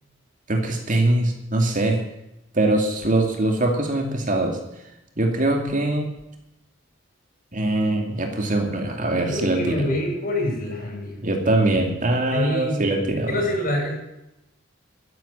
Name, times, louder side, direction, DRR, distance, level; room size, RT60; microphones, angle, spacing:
voice 1, 0.5-2.0 2.5-4.6 5.2-6.1 7.5-9.9 11.2-13.4, right 1 dB, 40° right, 3 dB, 2.6 m, -22 dB
voice 2, 9.2-11.1 12.3-12.8 13.3-13.9, left 1 dB, 45° left, 1 dB, 6.8 m, -25 dB
13.0 x 11.0 x 8.9 m, 0.87 s
head